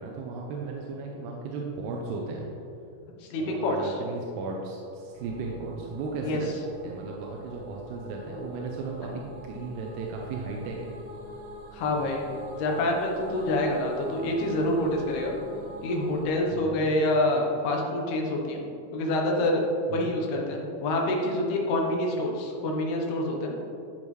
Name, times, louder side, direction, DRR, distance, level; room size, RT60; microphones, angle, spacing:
voice 1, 0.0-2.5 3.4-6.5 6.8-11.0 16.5-16.9 19.9-20.1, right 3 dB, 85° right, -1 dB, 2.8 m, -36 dB
voice 2, 3.3-3.9 6.2-6.4 8.3-8.4 11.7-12.3 12.6-15.4 15.8-18.6 18.9-19.6 19.9-23.5, left 1 dB, 80° left, 0 dB, 3.0 m, -27 dB
sound 1, 5.1-16.3, right 1 dB, 65° right, 2.2 m, -44 dB
12.5 x 5.4 x 3.2 m, 2.8 s
omnidirectional pair, 4.6 m